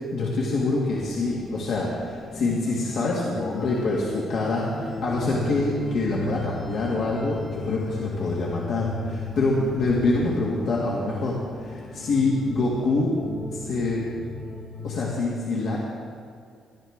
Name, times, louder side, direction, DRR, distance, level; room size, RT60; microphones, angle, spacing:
voice 1, 0.1-13.1 13.5-14.0 14.8-15.8, left 2 dB, 70° left, -5 dB, 2.1 m, -26 dB
sound 1, 0.6-15.3, left 3 dB, 50° left, 1.8 m, -35 dB
19.0 x 11.5 x 3.7 m, 2.2 s
cardioid pair, 90°, 0 cm